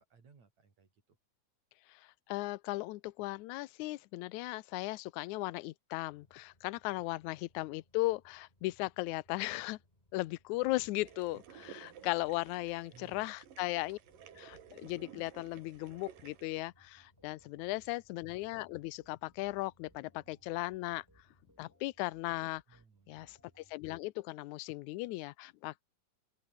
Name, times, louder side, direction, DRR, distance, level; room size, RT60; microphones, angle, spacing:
voice 1, 0.1-1.2 12.9-13.4 17.4-18.0 22.7-23.3, right 5 dB, 55° right, 5.5 m, -62 dB
voice 2, 1.9-9.8 10.1-14.0 14.4-21.0 21.6-22.6 23.1-25.8, left 19 dB, 75° left, 1.9 m, -37 dB
sound 1, 6.0-21.5, left 1 dB, 10° left, 5.1 m, -71 dB
sound 2, 10.6-23.8, equal, 5° right, 6.1 m, -70 dB
sound 3, 11.0-16.4, right 9 dB, 85° right, 4.0 m, -55 dB
open air
omnidirectional pair, 3.8 m